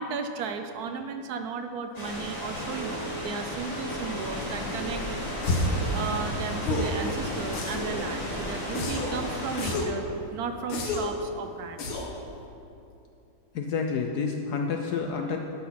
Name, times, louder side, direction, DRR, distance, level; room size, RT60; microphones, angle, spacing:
voice 1, 0.0-5.0 5.6-10.0 10.3-12.1, right 5 dB, 75° right, 7 dB, 0.9 m, -35 dB
sound 1, 1.9-9.8, left 1 dB, 20° left, 2.0 m, -34 dB
Telephone, 2.7-3.2 3.7-4.2 4.7-5.2 5.7-6.2 6.7-7.2 7.7-8.2 8.7-9.2 9.7-10.2 10.7-11.2, right 6 dB, 45° right, 1.1 m, -41 dB
sound 2, 5.4-5.8 6.6-7.0 7.5-8.0 8.7-9.2 9.6-10.0 10.7-11.2 11.8-12.2, left 2 dB, 85° left, 2.0 m, -29 dB
voice 2, 13.5-15.4, left 5 dB, 70° left, 3 dB, 1.0 m, -29 dB
12.0 x 6.1 x 5.8 m, 2.7 s
omnidirectional pair, 2.2 m